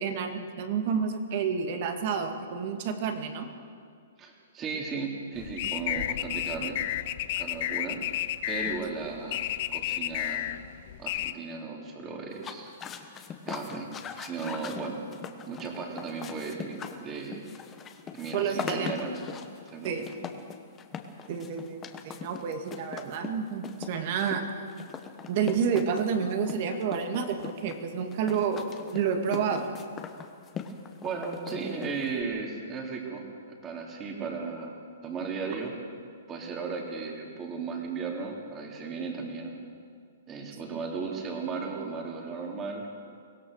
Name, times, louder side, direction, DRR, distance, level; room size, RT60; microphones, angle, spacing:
voice 1, 0.0-3.5 18.3-18.9 19.8-20.0 21.3-24.5 25.3-28.6 28.9-29.7, right 6 dB, 40° right, 5 dB, 2.2 m, -29 dB
voice 2, 4.2-6.8 7.4-9.4 9.7-10.4 11.0-12.7 13.5-13.9 14.2-15.0 15.5-17.5 18.1-19.1 19.6-20.0 31.0-34.7 35.0-35.7 36.3-39.5 40.3-42.9, right 4 dB, 20° right, 1 dB, 3.0 m, -36 dB
sound 1, 5.4-11.3, left 13 dB, 45° left, 0.7 m, -32 dB
sound 2, 12.3-32.2, left 7 dB, 15° left, 1.2 m, -41 dB
23.5 x 17.0 x 6.6 m, 2.2 s
hypercardioid pair, 160°, 0 cm